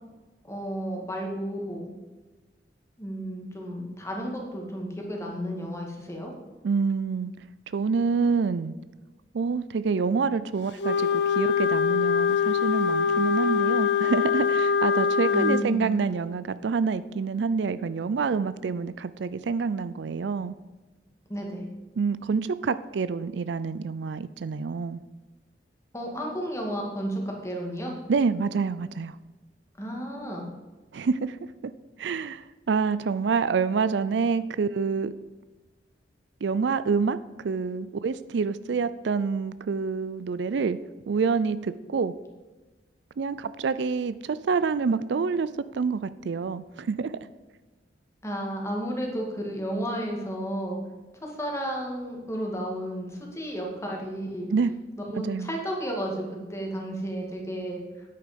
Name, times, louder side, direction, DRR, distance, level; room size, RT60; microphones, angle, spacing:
voice 1, 0.5-1.9 3.0-6.3 15.3-15.8 21.3-21.7 25.9-28.0 29.8-30.4 48.2-50.8 51.2-54.5 55.0-57.8, equal, 15° left, 0 dB, 2.2 m, -32 dB
voice 2, 6.6-7.3 7.7-8.8 9.3-20.5 22.0-25.0 28.1-29.2 30.9-31.4 31.6-31.7 32.0-35.1 36.4-40.8 41.1-42.1 43.2-47.1 54.5-54.7 55.2-55.6, right 5 dB, 70° right, 15 dB, 0.4 m, -27 dB
Wind instrument woodwind instrument, 10.8-15.7, left 6 dB, 65° left, 0.6 m, -23 dB
9.7 x 8.6 x 5.2 m, 1.2 s
head